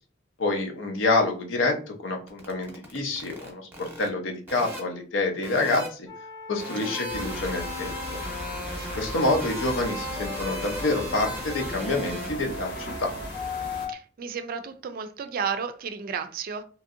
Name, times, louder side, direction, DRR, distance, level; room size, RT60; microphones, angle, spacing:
voice 1, 0.4-6.1 6.5-7.9 9.0-13.1, left 2 dB, 80° left, 0.7 m, -27 dB
sound 1, 2.3-4.1 4.5-4.8 5.4-5.9 6.6-12.3, equal, 10° right, 0.9 m, -37 dB
sound 2, 6.1-11.1 11.8-13.9, left 3 dB, 20° left, 0.5 m, -39 dB
voice 2, 6.8-7.2 13.9-16.6, right 6 dB, 50° right, 0.3 m, -33 dB
sound 3, 7.1-13.9, left 1 dB, 65° left, 1.0 m, -37 dB
2.9 x 2.6 x 2.5 m
head